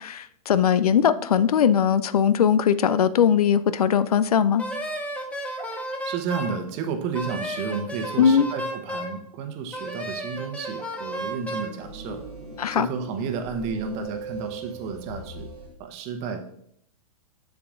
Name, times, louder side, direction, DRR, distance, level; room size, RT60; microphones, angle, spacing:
voice 1, 0.0-4.6 8.2-8.5 12.6-12.9, left 8 dB, 70° left, 15 dB, 0.4 m, -20 dB
Wind instrument woodwind instrument, 4.6-6.6 7.1-9.2 9.7-11.7, right 1 dB, 5° left, 0.8 m, -33 dB
voice 2, 6.0-12.2 12.7-15.5 15.8-16.4, right 6 dB, 35° right, 6 dB, 0.9 m, -32 dB
sound 1, 11.1-15.7, right 4 dB, 85° right, 1.4 m, -40 dB
7.1 x 6.9 x 2.5 m, 0.70 s
figure-of-eight pair, 110°, 20 cm